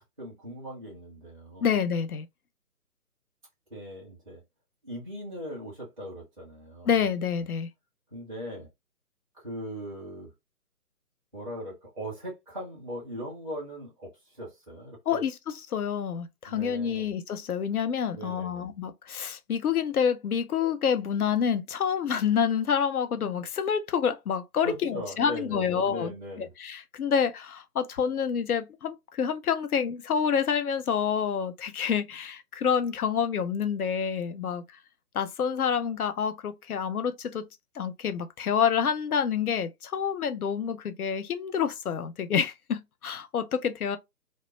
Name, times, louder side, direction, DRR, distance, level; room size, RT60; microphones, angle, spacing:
voice 1, 0.0-1.7 3.7-4.4 4.8-6.9 8.1-8.7 9.4-10.3 11.3-15.2 16.5-17.1 18.1-18.7 24.6-26.5, equal, ahead, 0.6 m, -39 dB
voice 2, 1.6-2.3 6.9-7.7 15.1-26.1 26.4-34.6 35.1-37.5 37.8-44.0, left 7 dB, 70° left, 0.5 m, -28 dB
2.2 x 2.1 x 2.9 m
figure-of-eight pair, 150°, 47 cm